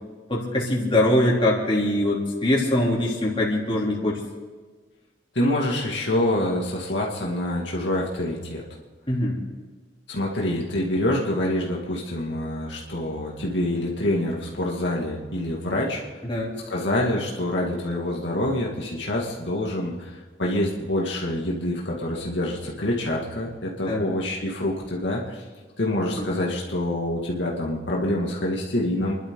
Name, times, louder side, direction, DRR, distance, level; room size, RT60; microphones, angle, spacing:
voice 1, 0.3-4.2 9.1-9.4 16.2-16.5 23.9-24.0 26.1-26.3, left 1 dB, 30° left, -4 dB, 3.4 m, -22 dB
voice 2, 5.3-8.6 10.1-16.0 16.7-25.4 25.8-29.2, left 1 dB, 65° left, -3 dB, 2.4 m, -26 dB
29.5 x 12.0 x 3.9 m, 1.4 s
head